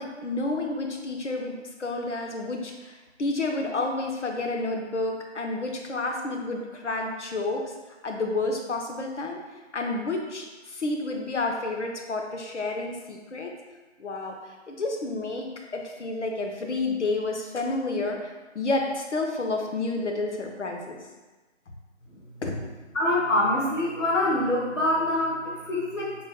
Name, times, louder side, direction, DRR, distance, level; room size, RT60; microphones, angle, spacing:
voice 1, 0.0-1.5 1.8-7.6 8.0-9.4 9.7-13.5 14.0-14.4 14.7-15.5 15.7-21.0 22.4-22.6, left 2 dB, 70° left, 2 dB, 0.7 m, -30 dB
voice 2, 22.9-26.2, left 1 dB, 85° left, -5 dB, 1.1 m, -25 dB
4.1 x 2.0 x 3.6 m, 1.2 s
figure-of-eight pair, 175°, 37 cm